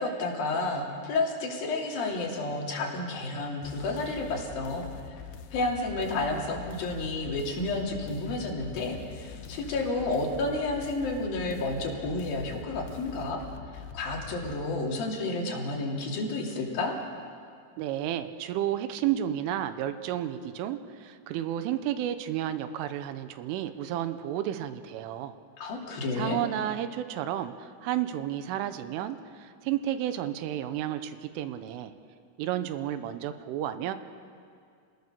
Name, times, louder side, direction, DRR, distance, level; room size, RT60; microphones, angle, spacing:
voice 1, 0.0-4.9 5.5-13.4 13.7-16.9 25.6-26.4, left 2 dB, 50° left, -2 dB, 4.5 m, -31 dB
sound 1, 3.6-14.6, left 7 dB, 80° left, 2.1 m, -44 dB
voice 2, 17.8-25.3 26.1-31.9 32.4-33.9, right 11 dB, 80° right, 10 dB, 3.4 m, -32 dB
29.5 x 19.5 x 6.8 m, 2.3 s
omnidirectional pair, 5.8 m